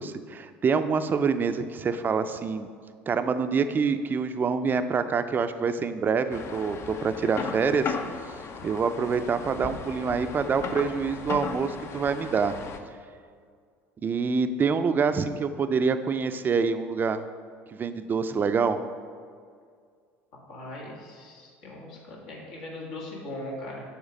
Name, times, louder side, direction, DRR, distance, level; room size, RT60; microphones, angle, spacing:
voice 1, 0.0-2.7 3.1-8.0 8.6-12.5 14.0-17.2 17.7-18.8, right 5 dB, 30° right, 10 dB, 0.4 m, -26 dB
sound 1, 6.3-12.8, left 5 dB, 45° left, 0.6 m, -36 dB
voice 2, 20.5-23.8, left 1 dB, 75° left, -3 dB, 1.6 m, -39 dB
7.2 x 3.1 x 5.1 m, 2.1 s
hypercardioid pair, 75°, 6 cm